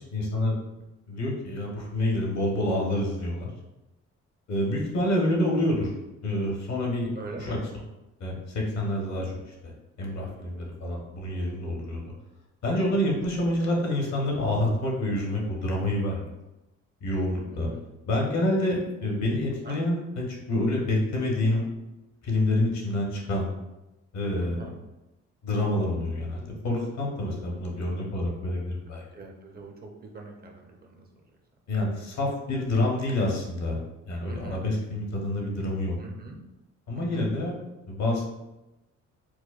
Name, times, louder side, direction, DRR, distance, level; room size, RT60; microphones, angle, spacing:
voice 1, 0.1-0.6 1.1-3.5 4.5-5.9 6.2-7.1 7.4-7.6 8.2-9.3 10.0-12.0 12.6-16.3 17.0-17.7 18.1-21.7 22.2-23.5 24.1-24.7 25.4-29.0 31.7-33.8 34.1-35.9 36.9-37.6 37.9-38.2, left 1 dB, 60° left, -1 dB, 1.1 m, -27 dB
voice 2, 7.2-7.7 17.5-17.8 19.6-19.8 21.5-21.7 24.4-24.7 29.1-31.1 34.3-34.6 36.0-36.4 36.9-37.3, right 3 dB, 30° right, 1 dB, 0.6 m, -43 dB
4.6 x 2.2 x 2.4 m, 0.99 s
cardioid pair, 90°, 30 cm